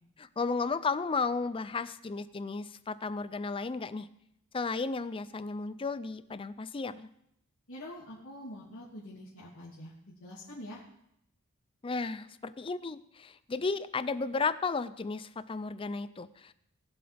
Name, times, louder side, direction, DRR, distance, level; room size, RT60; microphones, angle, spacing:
voice 1, 0.2-4.1 4.5-7.1 11.8-16.5, left 4 dB, 25° left, 14 dB, 0.4 m, -34 dB
voice 2, 7.7-10.8, left 1 dB, 80° left, -8 dB, 2.9 m, -45 dB
19.5 x 7.7 x 3.5 m, 0.76 s
head